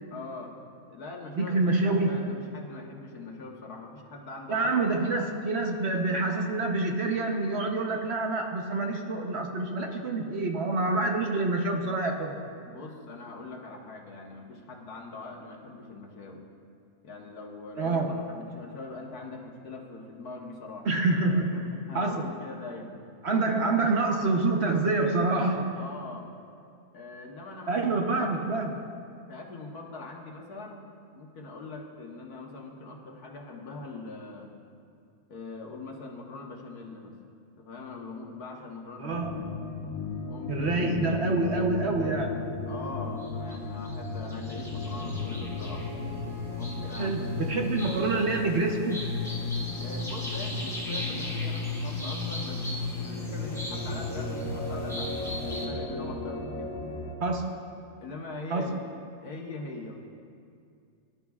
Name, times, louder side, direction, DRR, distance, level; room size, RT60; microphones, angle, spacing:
voice 1, 0.1-0.6 0.9-4.7 12.7-16.4 17.0-20.9 21.5-23.1 25.7-26.3 26.9-28.5 29.3-30.8 31.1-34.5 35.3-37.1 37.6-39.4 40.3-41.1 42.7-45.8 46.5-47.7 49.8-56.7 58.0-58.8 59.2-60.0, left 3 dB, 80° left, 0 dB, 1.8 m, -42 dB
voice 2, 1.4-2.2 4.5-12.4 17.8-18.2 20.8-22.3 23.2-25.8 27.7-28.7 39.0-39.4 40.5-42.5 47.0-49.0 57.2-57.6 58.5-58.8, right 3 dB, 50° right, 2 dB, 1.0 m, -27 dB
sound 1, 39.1-57.1, left 3 dB, 65° left, 1.8 m, -34 dB
sound 2, 43.2-43.6 43.8-55.7, equal, ahead, 2.0 m, -41 dB
21.0 x 11.5 x 2.4 m, 2.4 s
omnidirectional pair, 1.6 m